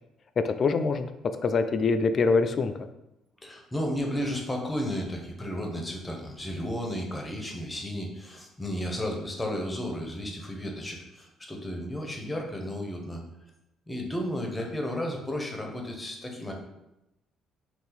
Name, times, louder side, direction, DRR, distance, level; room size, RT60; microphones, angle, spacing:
voice 1, 0.4-1.1 1.4-2.9, left 4 dB, 50° left, 9 dB, 0.3 m, -24 dB
voice 2, 3.4-13.2 13.9-16.5, equal, 20° left, 1 dB, 0.8 m, -33 dB
2.6 x 2.4 x 3.9 m, 0.90 s
supercardioid pair, 65°, 0 cm